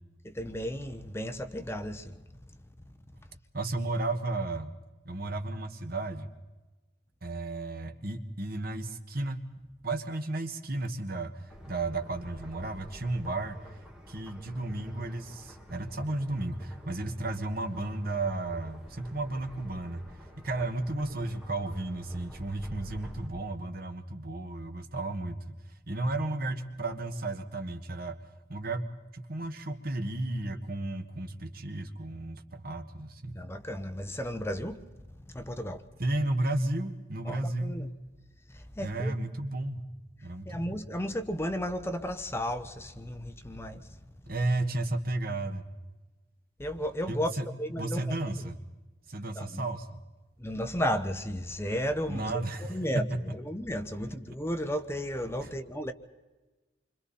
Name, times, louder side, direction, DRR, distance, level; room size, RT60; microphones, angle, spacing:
voice 1, 0.2-2.2 20.6-20.7 33.3-34.8 35.3-35.8 37.2-37.9 38.5-39.1 40.4-44.0 46.6-47.3 47.6-48.4 49.3-49.6 50.4-52.4 52.7-55.9, equal, 15° left, 1.1 m, -34 dB
voice 2, 3.5-4.7 5.0-6.3 7.2-9.4 9.8-13.8 14.1-20.0 20.4-25.5 25.9-28.2 28.5-33.4 36.0-37.8 38.8-39.8 40.2-40.7 44.3-45.6 47.1-47.5 47.8-48.6 49.1-50.0 52.1-53.2 55.4-55.5, right 2 dB, 55° right, 1.8 m, -33 dB
sound 1, 11.5-23.3, equal, 5° right, 2.6 m, -49 dB
28.5 x 25.5 x 4.3 m
head